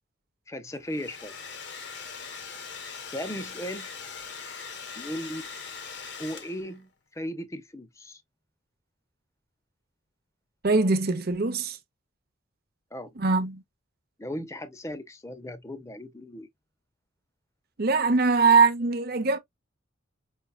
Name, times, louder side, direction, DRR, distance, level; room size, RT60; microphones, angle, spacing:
voice 1, 0.5-1.3 3.1-3.9 5.0-5.5 6.2-8.2 12.9-13.1 14.2-16.5, equal, 15° left, 0.5 m, -37 dB
Domestic sounds home sounds, 0.7-6.8, left 5 dB, 55° left, 0.8 m, -41 dB
voice 2, 10.6-11.8 13.2-13.6 17.8-19.4, right 4 dB, 45° right, 0.7 m, -22 dB
5.4 x 2.2 x 2.3 m
head